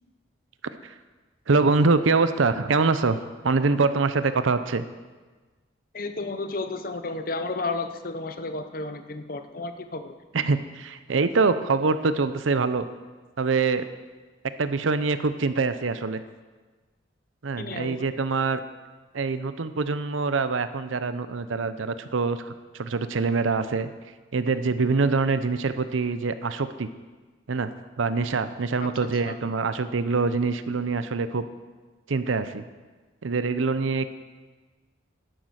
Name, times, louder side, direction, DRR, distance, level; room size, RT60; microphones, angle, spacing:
voice 1, 1.5-3.2 3.4-4.9 10.3-12.9 13.4-13.8 14.6-16.2 17.4-18.6 19.1-23.9 24.3-26.9 27.5-27.7 28.0-31.4 32.1-32.6 33.2-34.1, right 4 dB, 85° right, 12 dB, 0.6 m, -24 dB
voice 2, 5.9-10.2 17.6-18.1 28.8-28.9 29.3-29.4, left 3 dB, 45° left, 8 dB, 0.8 m, -32 dB
11.5 x 9.4 x 6.4 m, 1.3 s
head